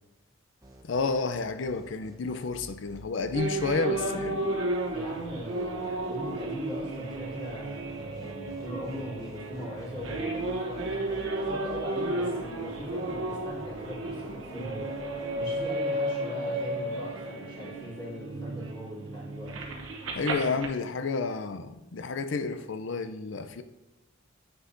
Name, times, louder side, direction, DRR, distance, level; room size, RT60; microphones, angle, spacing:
sound 1, 0.6-15.6, right 1 dB, 15° right, 0.9 m, -52 dB
voice 1, 0.9-4.4 20.1-23.6, left 4 dB, 60° left, 0.5 m, -30 dB
sound 2, 3.3-20.7, right 2 dB, 70° right, 1.0 m, -33 dB
voice 2, 4.9-19.6, equal, 20° left, 2.4 m, -41 dB
sound 3, 5.1-17.5, right 1 dB, 90° right, 1.7 m, -48 dB
9.5 x 6.3 x 2.6 m
head